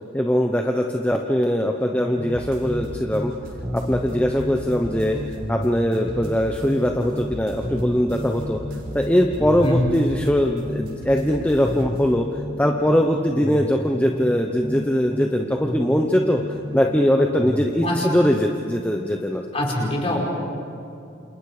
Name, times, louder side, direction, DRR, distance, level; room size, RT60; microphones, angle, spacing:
voice 1, 0.1-3.3 3.7-5.2 5.5-8.6 8.9-12.3 12.6-16.4 16.7-19.4, equal, 5° left, 2 dB, 1.0 m, -21 dB
sound 1, 1.9-3.4 3.6-7.4 7.6-11.4 11.6-15.4 15.6-17.7, equal, 10° right, 2.2 m, -32 dB
sound 2, 2.3-12.1, equal, 50° right, 5.7 m, -38 dB
voice 2, 9.6-10.0 17.8-18.1 19.5-20.2, left 1 dB, 30° left, -2 dB, 5.3 m, -23 dB
29.0 x 28.0 x 5.0 m, 2.6 s
head